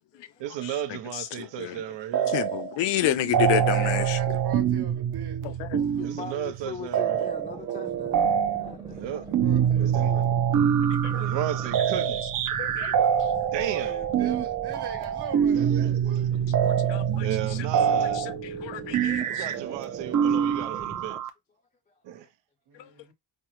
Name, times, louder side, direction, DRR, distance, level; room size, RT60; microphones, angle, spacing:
voice 1, 0.4-2.3 6.0-7.3 8.9-9.2 9.8-10.2 11.1-12.3 13.5-14.0 15.6-16.3 17.2-18.2 19.3-21.2 22.0-22.3, right 11 dB, 85° right, 0.7 m, -34 dB
voice 2, 1.1-1.8 2.3-4.2 5.4-5.8 11.0-11.3 12.0-12.1 12.6-13.3 16.6-17.3 18.1-19.4, left 13 dB, 90° left, 0.5 m, -30 dB
sound 1, 2.1-2.8 3.0-21.3, right 8 dB, 50° right, 0.5 m, -25 dB
voice 3, 3.7-5.4 9.1-10.8 11.1-11.3 13.5-16.4 22.7-23.1, right 6 dB, 65° right, 1.2 m, -42 dB
voice 4, 5.8-9.5 10.6-10.9 12.9-13.0 21.9-22.0, left 6 dB, 20° left, 0.4 m, -42 dB
sound 2, 7.1-21.2, right 2 dB, 15° right, 0.7 m, -43 dB
5.2 x 2.0 x 3.0 m
wide cardioid pair, 175°, 42 cm